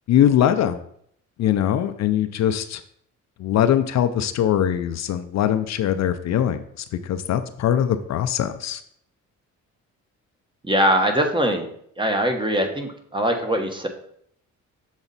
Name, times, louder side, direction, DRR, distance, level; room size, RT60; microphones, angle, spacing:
voice 1, 0.1-0.8 1.4-2.8 3.4-6.6 7.0-8.8, left 10 dB, 65° left, 10 dB, 0.5 m, -21 dB
voice 2, 10.6-11.7 12.0-13.9, equal, 15° right, 4 dB, 1.1 m, -22 dB
7.0 x 4.0 x 4.1 m, 0.67 s
cardioid pair, 90°, 30 cm